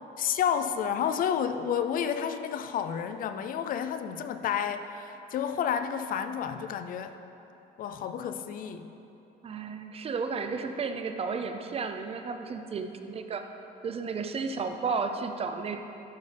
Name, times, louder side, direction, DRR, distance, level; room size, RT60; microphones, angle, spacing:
voice 1, 0.2-7.1 7.8-8.9, left 8 dB, 55° left, 9 dB, 0.4 m, -30 dB
voice 2, 9.4-13.5 13.8-15.8, right 5 dB, 35° right, 7 dB, 0.5 m, -33 dB
12.0 x 5.4 x 3.4 m, 3.0 s
cardioid pair, 110°, 17 cm